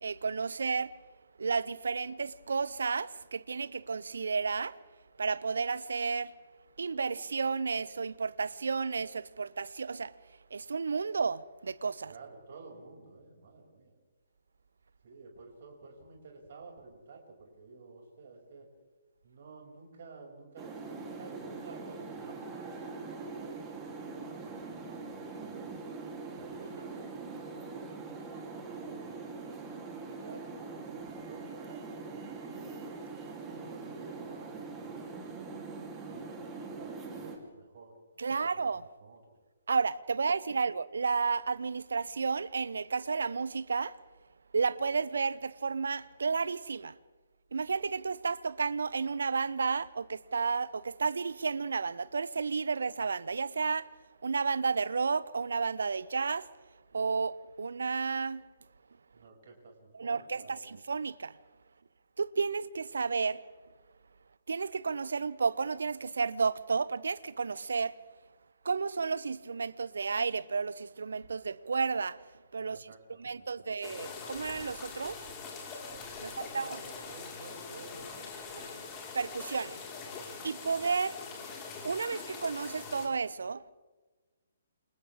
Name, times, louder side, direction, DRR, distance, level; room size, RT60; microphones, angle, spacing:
voice 1, 0.0-0.9 1.4-4.8 5.2-6.3 6.8-10.1 10.5-12.1 38.2-38.9 39.7-44.0 44.5-47.0 47.5-53.9 54.2-56.5 56.9-58.4 59.9-61.4 62.2-63.5 64.5-68.0 68.6-72.2 72.5-72.9 73.2-75.2 76.2-76.8 79.1-79.8 80.4-81.2 81.8-83.6, right 5 dB, 65° right, 0.8 m, -32 dB
voice 2, 12.0-14.0 15.0-18.7 19.2-25.8 26.4-28.0 28.6-29.2 29.8-32.2 32.5-32.9 33.2-35.5 36.0-37.9 38.3-39.2 59.1-60.7 72.6-73.7 76.2-78.8, right 3 dB, 50° right, 6.9 m, -52 dB
sound 1, 20.6-37.4, right 4 dB, 15° right, 3.4 m, -43 dB
sound 2, 73.8-83.1, left 5 dB, 25° left, 4.9 m, -43 dB
29.0 x 27.5 x 3.7 m
figure-of-eight pair, 130°, 0 cm